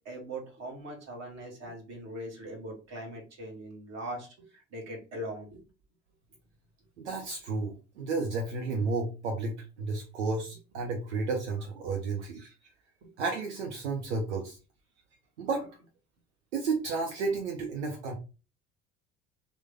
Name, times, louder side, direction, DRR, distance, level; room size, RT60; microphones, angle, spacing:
voice 1, 0.0-5.6 13.0-13.1, right 1 dB, 50° right, 0 dB, 1.6 m, -41 dB
voice 2, 7.0-12.5 13.2-14.6 15.4-15.7 16.5-18.1, right 3 dB, 90° right, 2 dB, 0.7 m, -32 dB
3.1 x 2.1 x 3.4 m, 0.32 s
hypercardioid pair, 65°, 34 cm